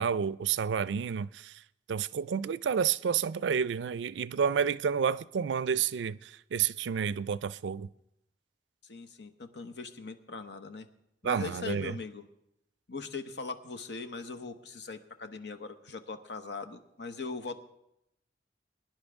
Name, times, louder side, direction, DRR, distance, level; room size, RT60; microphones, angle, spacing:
voice 1, 0.0-1.5 1.9-7.9 11.2-11.9, right 7 dB, 90° right, 0.4 m, -30 dB
voice 2, 8.8-10.9 11.2-12.3 12.9-17.6, left 4 dB, 75° left, 1.0 m, -40 dB
22.0 x 10.5 x 3.5 m
head